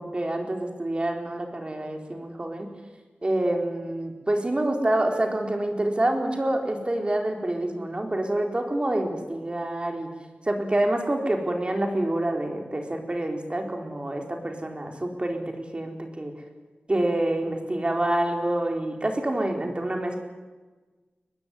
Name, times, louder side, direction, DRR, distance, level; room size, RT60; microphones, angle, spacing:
voice 1, 0.0-2.7 3.2-10.1 10.5-16.3 16.9-20.2, right 1 dB, 30° right, 3 dB, 4.3 m, -27 dB
23.5 x 20.5 x 9.6 m, 1.3 s
wide cardioid pair, 90°, 4 cm